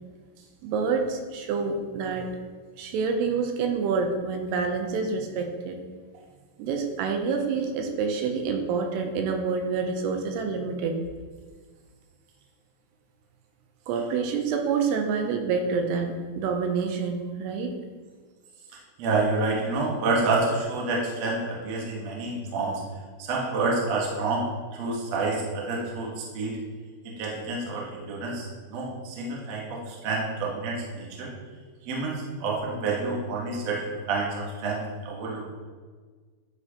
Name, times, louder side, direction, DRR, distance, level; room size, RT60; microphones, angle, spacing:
voice 1, 0.6-2.3 2.8-5.8 6.6-11.0 13.9-17.8, right 5 dB, 85° right, 4 dB, 2.7 m, -27 dB
voice 2, 19.0-22.8 23.2-24.4 24.7-26.5 27.2-31.3 31.9-35.4, right 3 dB, 65° right, -3 dB, 1.7 m, -28 dB
9.8 x 4.4 x 2.9 m, 1.5 s
omnidirectional pair, 4.7 m